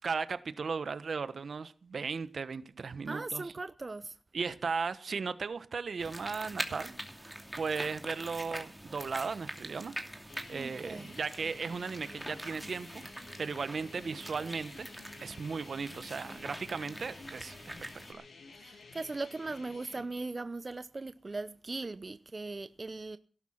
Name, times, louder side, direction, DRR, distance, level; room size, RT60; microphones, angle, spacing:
voice 1, 0.0-3.5 4.3-6.9 7.2-10.0 10.5-13.1 13.4-14.9 15.2-18.2, right 5 dB, 70° right, 1.2 m, -36 dB
voice 2, 3.1-4.1 10.5-11.2 18.6-23.2, right 3 dB, 40° right, 0.7 m, -39 dB
sound 1, 6.0-18.1, right 1 dB, 5° right, 2.8 m, -44 dB
sound 2, 10.3-20.1, left 4 dB, 80° left, 2.9 m, -52 dB
18.0 x 11.5 x 5.8 m
wide cardioid pair, 75°, 0 cm